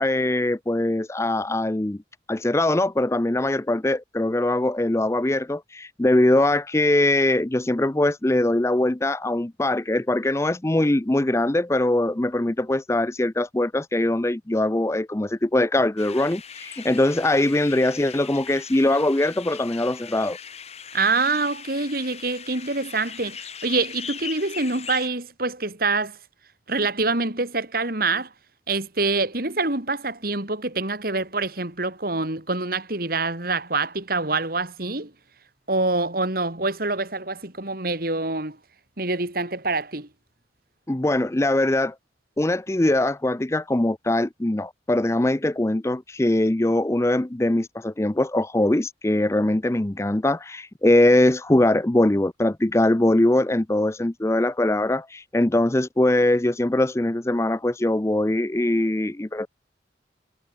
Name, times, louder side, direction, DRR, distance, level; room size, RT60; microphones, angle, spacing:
voice 1, 0.0-2.0 2.3-20.4 40.9-42.0 42.4-59.5, left 1 dB, 15° left, 0.5 m, -22 dB
sound 1, 16.0-25.1, left 7 dB, 35° left, 4.3 m, -39 dB
voice 2, 20.9-26.2 26.7-28.3 28.7-35.1 35.7-38.6 39.0-40.1, right 3 dB, 55° right, 3.3 m, -25 dB
head